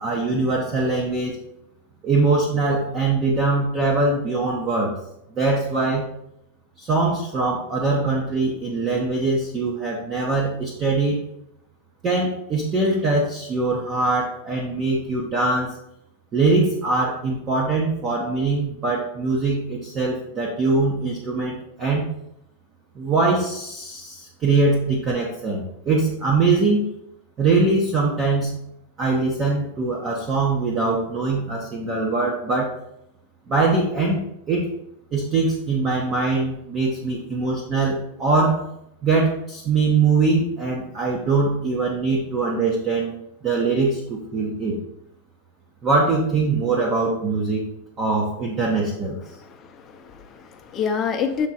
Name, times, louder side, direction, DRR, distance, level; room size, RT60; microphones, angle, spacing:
voice 1, 0.0-1.4 2.0-5.0 5.4-6.1 6.8-11.2 12.0-15.8 16.3-22.1 22.9-26.8 27.4-28.6 29.0-32.7 33.5-34.2 34.5-34.7 35.1-38.6 39.0-44.8 45.8-47.6 48.0-49.2, right 3 dB, 25° right, -2 dB, 0.9 m, -22 dB
voice 2, 49.3-51.5, left 6 dB, 20° left, 4 dB, 0.7 m, -28 dB
7.4 x 3.6 x 4.2 m, 0.79 s
supercardioid pair, 165°, 0 cm